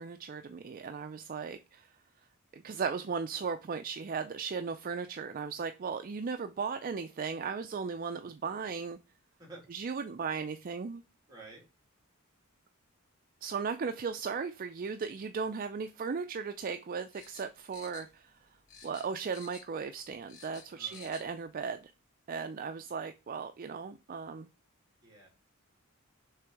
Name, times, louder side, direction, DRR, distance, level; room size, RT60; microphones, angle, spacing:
voice 1, 0.0-1.9 2.5-9.0 9.7-11.0 13.4-18.4 18.8-21.9 22.3-24.5, right 5 dB, 40° right, 0.4 m, -36 dB
voice 2, 11.3-11.7 20.7-21.1 25.0-25.3, right 2 dB, 20° right, 2.8 m, -51 dB
sound 1, 17.1-18.4 18.7-19.8 20.1-21.3 21.6-21.7, left 6 dB, 80° left, 2.0 m, -52 dB
6.6 x 3.4 x 4.6 m
head